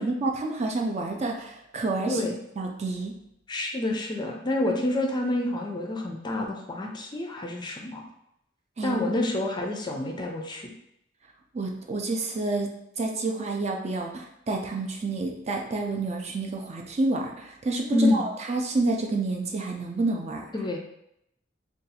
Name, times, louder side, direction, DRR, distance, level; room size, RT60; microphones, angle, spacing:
voice 1, 0.0-2.2 2.6-3.1 8.8-9.0 11.5-12.7 13.0-20.5, right 2 dB, 35° right, 1 dB, 0.4 m, -29 dB
voice 2, 2.1-2.4 3.5-8.0 8.8-10.7 17.9-18.2 20.5-20.8, left 1 dB, 25° left, 1 dB, 0.4 m, -28 dB
2.6 x 2.3 x 4.0 m, 0.78 s
head